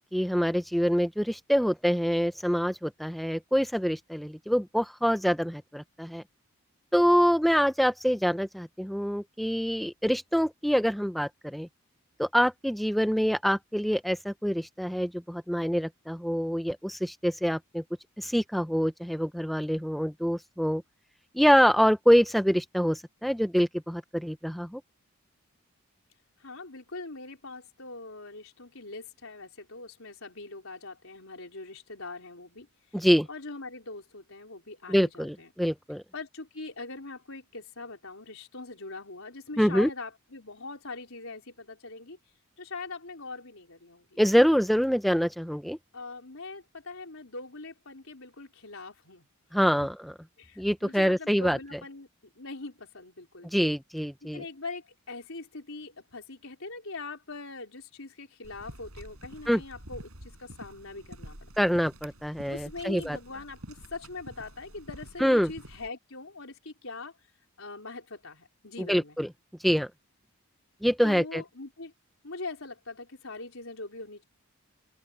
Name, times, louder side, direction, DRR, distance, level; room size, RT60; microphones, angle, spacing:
voice 1, 0.0-6.2 6.9-11.7 12.2-17.8 18.2-20.8 21.3-24.8 32.9-33.3 34.9-36.0 39.6-39.9 44.2-45.8 49.5-50.1 50.6-51.6 53.5-54.4 59.5-59.6 61.6-63.2 65.2-65.5 68.8-69.3 69.6-69.9 70.8-71.4, equal, ahead, 0.5 m, -25 dB
voice 2, 26.4-32.7 33.0-35.5 36.1-42.2 42.6-44.2 45.9-49.2 50.4-52.1 52.4-53.7 54.2-61.5 62.5-67.1 67.6-69.2 71.0-71.9 72.2-74.2, left 3 dB, 65° left, 4.2 m, -42 dB
sound 1, 58.4-65.9, right 1 dB, 75° right, 7.5 m, -48 dB
open air
head